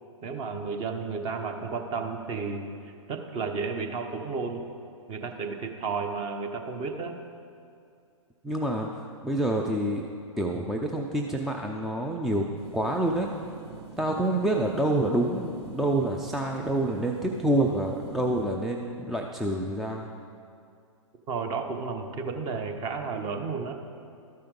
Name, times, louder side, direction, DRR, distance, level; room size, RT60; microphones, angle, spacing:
voice 1, 0.2-2.7 3.1-4.6 5.1-7.1 21.3-23.7, right 4 dB, 30° right, 5 dB, 0.9 m, -32 dB
voice 2, 8.4-10.0 10.4-12.5 12.7-13.3 14.0-20.1, right 1 dB, ahead, 0 dB, 0.3 m, -27 dB
sound 1, 12.6-18.5, right 5 dB, 50° right, 1.3 m, -44 dB
13.0 x 5.6 x 5.2 m, 2.4 s
hypercardioid pair, 120°, 17 cm